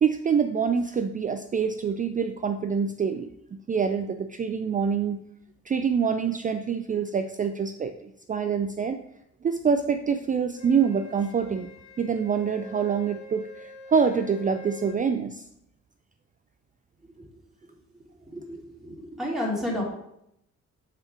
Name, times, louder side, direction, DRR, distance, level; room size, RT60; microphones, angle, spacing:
voice 1, 0.0-5.2 5.7-9.0 9.4-11.7 12.0-15.4, right 6 dB, 25° right, 7 dB, 0.4 m, -26 dB
Wind instrument woodwind instrument, 10.6-15.0, left 2 dB, 65° left, 2.1 m, -46 dB
voice 2, 18.3-19.8, left 1 dB, ahead, -4 dB, 2.6 m, -31 dB
6.8 x 4.3 x 4.8 m, 0.76 s
cardioid pair, 90°, 30 cm